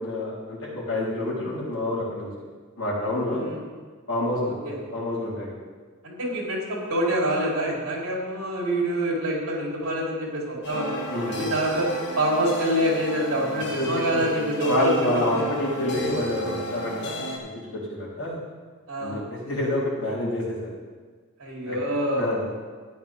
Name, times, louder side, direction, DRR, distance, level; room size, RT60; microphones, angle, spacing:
voice 1, 0.0-2.3 2.8-3.5 4.1-5.6 11.1-11.5 13.8-14.2 14.6-18.4 19.0-20.6 21.7-21.8 22.2-22.4, left 1 dB, 70° left, -7 dB, 3.9 m, -28 dB
voice 2, 3.3-3.6 4.5-4.8 6.0-11.9 12.2-15.5 18.9-19.2 21.4-22.2, right 1 dB, 75° right, -4 dB, 3.8 m, -26 dB
sound 1, 10.6-17.4, left 1 dB, 55° left, 1.7 m, -34 dB
13.5 x 9.7 x 3.6 m, 1.5 s
head